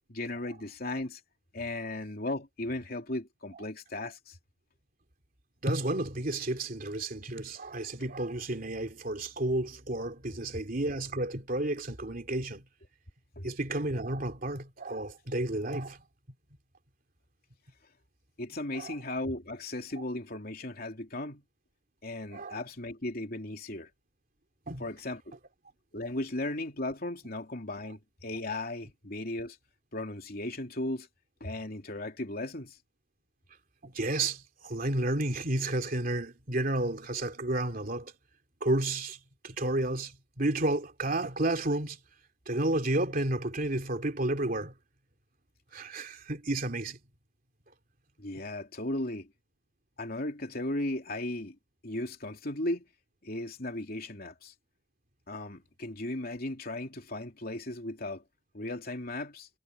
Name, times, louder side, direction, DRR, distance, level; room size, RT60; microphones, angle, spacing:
voice 1, 0.1-1.2 1.5-4.4 13.3-13.5 18.4-21.4 22.0-23.9 24.8-25.4 25.9-29.6 29.9-31.1 31.4-32.8 48.2-49.3 50.0-51.6 51.8-52.8 53.2-54.5 55.3-58.2 58.5-59.5, left 1 dB, 50° left, 3.2 m, -36 dB
voice 2, 5.6-12.6 13.4-16.0 18.7-19.0 22.3-22.6 24.7-24.8 33.8-38.1 38.6-39.2 39.4-40.1 40.4-42.0 42.5-44.7 45.7-47.0, right 1 dB, 50° right, 3.0 m, -31 dB
head